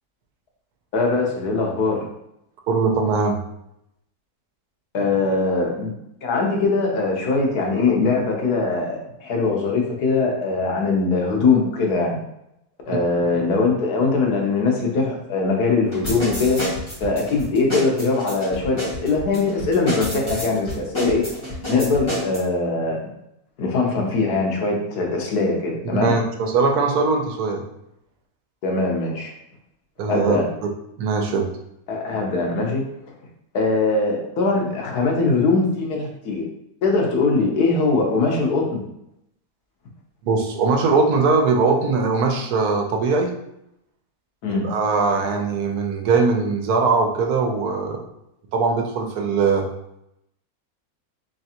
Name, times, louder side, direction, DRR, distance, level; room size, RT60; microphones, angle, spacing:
voice 1, 0.9-2.0 4.9-5.9 6.2-12.2 12.9-16.6 17.0-21.2 21.7-23.0 23.6-26.1 28.6-29.3 30.1-30.5 31.9-32.8 33.5-36.5 36.8-38.8 44.4-44.7, left 3 dB, 80° left, 0 dB, 1.4 m, -21 dB
voice 2, 2.7-3.4 12.9-13.0 25.9-27.6 30.0-30.4 31.0-31.5 40.2-43.3 44.5-48.1 48.5-49.7, right 4 dB, 80° right, 3 dB, 1.2 m, -21 dB
sound 1, 15.9-22.4, left 1 dB, 20° left, 1.5 m, -29 dB
3.7 x 3.2 x 2.8 m, 0.82 s
omnidirectional pair, 1.6 m